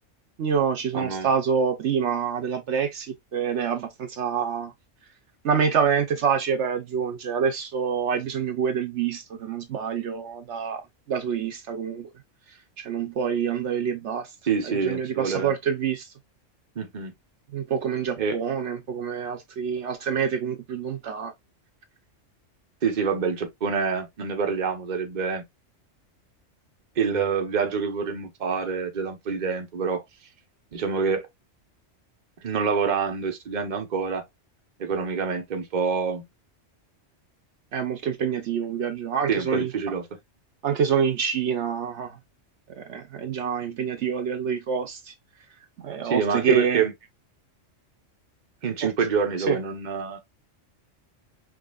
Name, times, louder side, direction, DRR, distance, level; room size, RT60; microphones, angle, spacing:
voice 1, 0.4-4.7 5.4-10.8 11.1-12.1 12.8-14.3 14.8-16.0 17.5-21.3 37.7-39.7 40.6-42.2 42.8-45.1 45.8-46.8 48.8-48.9 49.5-49.6, right 7 dB, 70° right, 1.0 m, -26 dB
voice 2, 0.9-1.3 14.5-15.5 16.8-17.1 18.2-18.4 22.8-25.4 27.0-30.0 30.7-31.3 32.4-34.2 34.8-36.2 39.3-40.1 46.0-46.9 48.6-50.2, right 5 dB, 40° right, 0.9 m, -26 dB
5.2 x 3.3 x 2.3 m
omnidirectional pair, 1.3 m